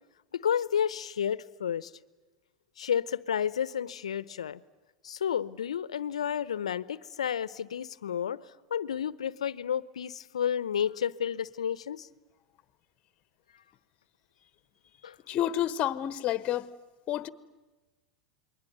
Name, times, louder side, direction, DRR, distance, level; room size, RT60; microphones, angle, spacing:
voice 1, 0.3-1.9 2.8-4.6 5.0-8.4 8.7-12.1 15.0-15.1, left 8 dB, 85° left, 0.8 m, -31 dB
voice 2, 15.3-16.7 17.1-17.3, left 12 dB, 40° left, 1.3 m, -29 dB
28.0 x 22.0 x 9.4 m
hypercardioid pair, 105°, 3 cm